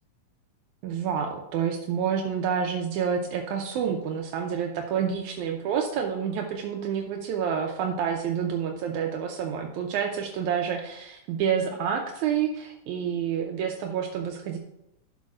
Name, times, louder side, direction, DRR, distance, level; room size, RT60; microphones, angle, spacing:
voice 1, 0.8-14.6, right 7 dB, 80° right, 2 dB, 2.0 m, -28 dB
11.5 x 7.3 x 2.5 m, 0.84 s
omnidirectional pair, 3.5 m